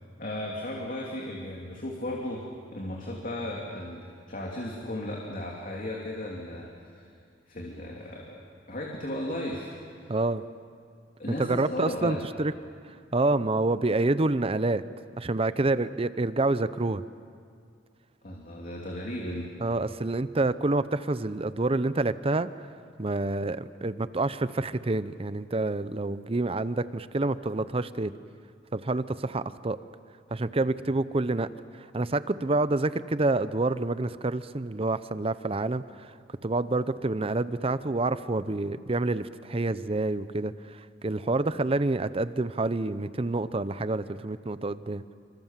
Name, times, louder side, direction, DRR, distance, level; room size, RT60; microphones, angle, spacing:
voice 1, 0.2-2.4 2.7-4.0 4.3-7.0 7.5-8.4 8.7-10.1 11.2-12.2 18.2-19.5, left 1 dB, 50° left, -2 dB, 3.0 m, -35 dB
voice 2, 10.1-10.4 11.4-12.5 12.8-14.8 15.2-17.0 19.6-22.5 23.0-28.1 28.7-29.8 30.3-31.5 31.8-36.1 36.4-45.0, right 2 dB, 30° right, 14 dB, 0.7 m, -28 dB
27.5 x 25.5 x 7.5 m, 2.2 s
head